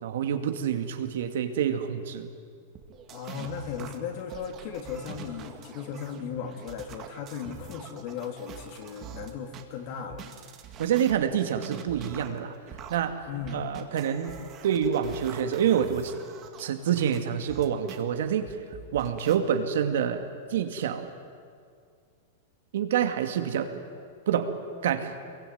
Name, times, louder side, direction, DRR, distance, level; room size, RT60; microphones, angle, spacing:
voice 1, 0.0-2.3 10.8-12.5 12.9-13.2 13.5-16.1 16.6-18.5 18.9-21.1 22.7-23.8 24.3-24.5 24.8-25.1, right 8 dB, 70° right, 7 dB, 2.3 m, -27 dB
sound 1, 2.7-9.6 10.1-18.0 18.5-19.4, right 8 dB, 25° right, 1.9 m, -45 dB
voice 2, 3.1-10.3 13.3-13.7, left 7 dB, 40° left, 5 dB, 2.8 m, -36 dB
25.5 x 22.5 x 9.5 m, 2.2 s
supercardioid pair, 175°, 0 cm